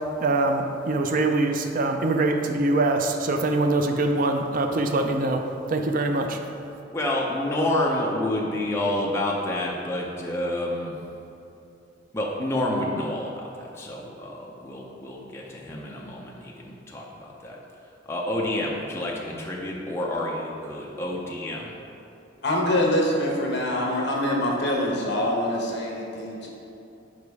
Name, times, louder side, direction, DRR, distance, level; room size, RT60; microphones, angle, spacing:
voice 1, 0.2-5.4 5.7-6.4, right 2 dB, 45° right, 5 dB, 0.4 m, -23 dB
voice 2, 6.9-10.9 12.1-17.6 18.1-21.7, left 1 dB, 15° left, -3 dB, 0.5 m, -29 dB
voice 3, 22.4-26.5, left 1 dB, 60° left, -1 dB, 1.2 m, -24 dB
5.2 x 5.1 x 4.7 m, 2.8 s
head